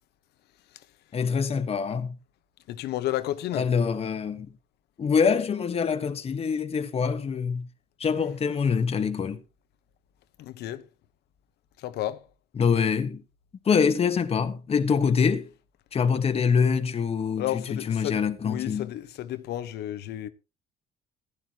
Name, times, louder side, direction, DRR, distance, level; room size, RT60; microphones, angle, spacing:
voice 1, 1.1-2.1 3.5-4.5 5.0-7.7 8.0-9.4 12.6-13.2 13.6-15.5 15.9-18.9, left 6 dB, 35° left, 1.4 m, -25 dB
voice 2, 2.7-3.7 10.4-10.8 11.8-12.3 17.4-20.3, left 13 dB, 75° left, 1.2 m, -32 dB
15.5 x 11.5 x 3.0 m
cardioid pair, 110°, 17 cm